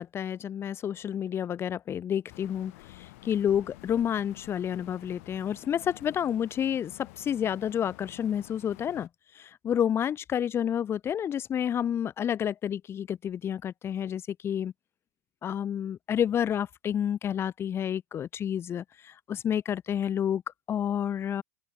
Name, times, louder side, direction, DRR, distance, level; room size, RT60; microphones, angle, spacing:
voice 1, 0.0-2.7 3.0-9.1 9.4-14.7 15.4-20.4 20.7-21.4, left 9 dB, 30° left, 1.2 m, -29 dB
sound 1, 2.3-9.1, left 21 dB, 70° left, 7.2 m, -50 dB
open air
hypercardioid pair, 105°, 8 cm